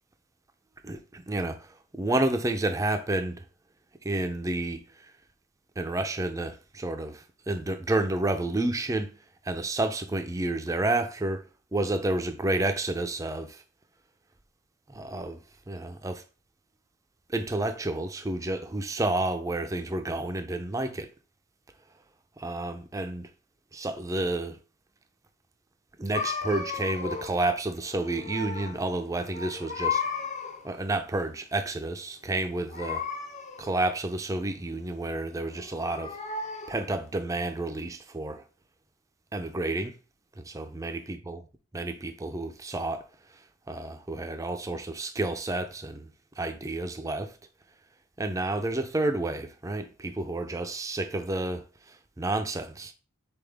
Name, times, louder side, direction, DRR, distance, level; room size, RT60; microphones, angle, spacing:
voice 1, 0.8-3.4 4.0-5.1 5.8-9.1 9.4-11.4 11.7-13.6 14.9-15.4 15.7-16.2 17.3-21.1 22.4-23.3 23.7-24.6 26.0-30.0 30.6-33.0 33.6-36.2 36.7-38.4 39.3-39.9 40.5-41.4 41.7-43.0 43.7-46.1 46.4-47.3 48.2-52.9, right 2 dB, 15° right, 0.4 m, -30 dB
sound 1, 26.1-27.5 27.8-28.9 29.2-30.7 32.7-33.8 35.4-36.9, left 5 dB, 35° left, 0.6 m, -34 dB
4.2 x 3.5 x 3.4 m
head